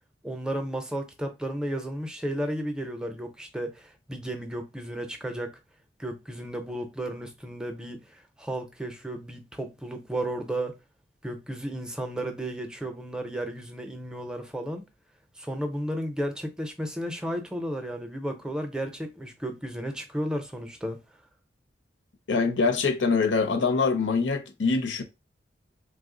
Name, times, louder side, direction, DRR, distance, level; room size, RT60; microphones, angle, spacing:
voice 1, 0.2-5.5 6.0-8.1 8.4-10.8 11.2-14.8 15.4-21.0, right 1 dB, 5° right, 0.5 m, -33 dB
voice 2, 22.3-25.0, left 4 dB, 80° left, 0.6 m, -24 dB
3.1 x 2.0 x 3.7 m
head